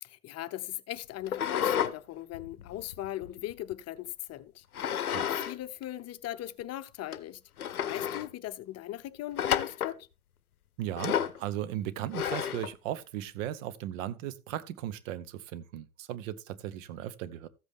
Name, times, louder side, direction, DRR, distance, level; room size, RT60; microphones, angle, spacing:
voice 1, 0.0-7.4 7.7-10.1, left 14 dB, 35° left, 0.7 m, -39 dB
sound 1, 1.3-1.9 2.3-3.7 4.7-5.5 5.8-5.9 6.6-6.7 7.1-7.2 7.6-8.3 9.4-10.0 11.0-11.4 12.1-12.7, left 9 dB, 85° left, 0.7 m, -31 dB
voice 2, 10.8-17.5, right 12 dB, 60° right, 1.0 m, -37 dB
14.0 x 8.1 x 3.6 m
figure-of-eight pair, 70°, 43 cm